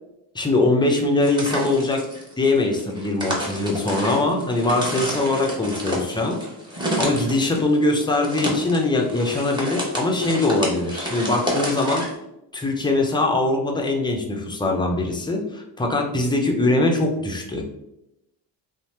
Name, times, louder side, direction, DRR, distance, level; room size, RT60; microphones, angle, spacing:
voice 1, 0.3-2.0 2.4-6.4 7.0-12.1 12.5-17.6, left 2 dB, 10° left, 1 dB, 0.4 m, -22 dB
sound 1, 1.2-12.1, equal, 10° right, 0.9 m, -30 dB
2.7 x 2.0 x 3.1 m, 0.85 s
cardioid pair, 80°, 47 cm